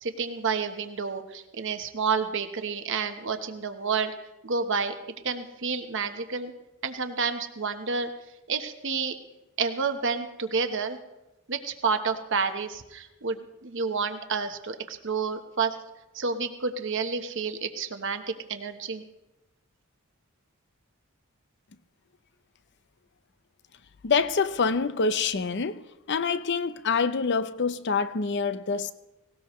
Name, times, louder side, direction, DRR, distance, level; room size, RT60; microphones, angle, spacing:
voice 1, 0.0-4.1 4.4-4.9 5.2-6.5 6.8-8.1 8.5-9.1 9.6-11.0 11.5-15.8 16.1-19.0, right 5 dB, 60° right, 1.1 m, -29 dB
voice 2, 24.0-25.8 26.1-28.9, left 5 dB, 55° left, 0.6 m, -26 dB
18.5 x 18.0 x 3.2 m
head